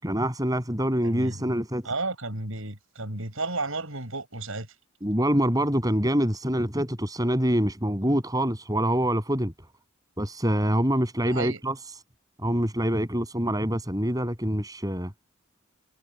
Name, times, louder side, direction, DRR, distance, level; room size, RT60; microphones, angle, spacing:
voice 1, 0.0-1.9 5.0-9.5 10.2-11.7 12.4-15.1, equal, 15° right, 7.7 m, -25 dB
voice 2, 1.0-1.5 1.8-4.7 11.2-11.6, right 2 dB, 70° right, 7.0 m, -32 dB
head